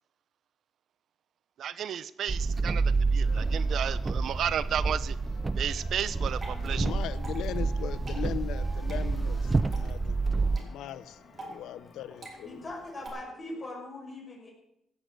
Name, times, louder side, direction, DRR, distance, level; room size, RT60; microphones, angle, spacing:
voice 1, 1.6-2.8 3.1-5.2 5.6-6.9, right 9 dB, 65° right, 17 dB, 0.8 m, -33 dB
sound 1, 2.3-10.6, right 3 dB, 25° right, 0.5 m, -28 dB
sound 2, 3.3-13.7, left 4 dB, 55° left, 3.0 m, -54 dB
Water / Drip, 6.1-13.1, right 2 dB, 40° right, 4.9 m, -48 dB
voice 2, 6.6-10.2 10.5-12.7, left 11 dB, 80° left, 16 dB, 0.8 m, -39 dB
voice 3, 12.4-14.5, left 1 dB, 30° left, -1 dB, 6.1 m, -41 dB
17.0 x 8.1 x 8.0 m, 0.80 s
cardioid pair, 90°, 0 cm